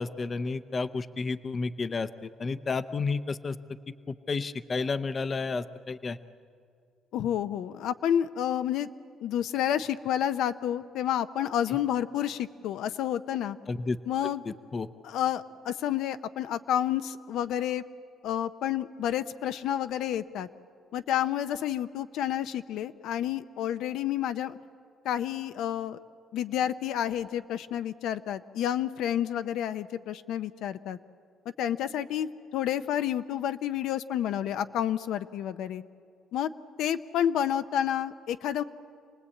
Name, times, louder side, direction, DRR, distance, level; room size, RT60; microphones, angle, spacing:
voice 1, 0.0-3.6 4.1-6.2 13.7-14.0 14.2-14.9, left 4 dB, 30° left, 13 dB, 0.6 m, -31 dB
voice 2, 7.1-8.9 9.2-13.6 14.1-14.4 15.0-17.8 18.2-20.5 20.9-24.6 25.0-26.0 26.3-31.0 31.6-35.8 36.3-36.5 36.8-38.6, left 10 dB, 80° left, 11 dB, 0.6 m, -30 dB
27.0 x 19.5 x 8.4 m, 2.3 s
cardioid pair, 150°, 0 cm